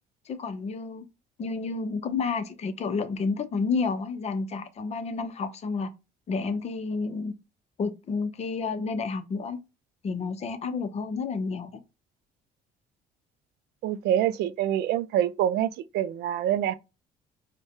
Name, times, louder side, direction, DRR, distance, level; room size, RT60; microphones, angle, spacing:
voice 1, 0.3-1.1 1.4-5.9 6.3-7.3 7.8-9.6 10.0-11.8, left 4 dB, 40° left, 0.6 m, -30 dB
voice 2, 13.8-16.7, right 11 dB, 75° right, 0.4 m, -26 dB
4.7 x 2.1 x 2.8 m
cardioid pair, 110°, 17 cm